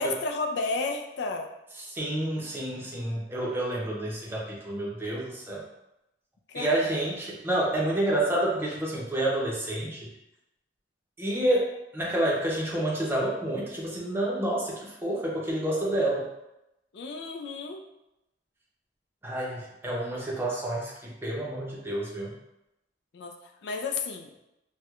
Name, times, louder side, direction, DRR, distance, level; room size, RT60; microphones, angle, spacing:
voice 1, 0.0-1.5 6.5-6.7 16.9-17.8 23.1-24.4, left 3 dB, 70° left, 4 dB, 0.4 m, -32 dB
voice 2, 1.9-5.6 6.5-10.1 11.2-16.3 19.2-22.3, right 1 dB, 15° right, -4 dB, 0.6 m, -29 dB
4.4 x 2.2 x 2.3 m, 0.90 s
head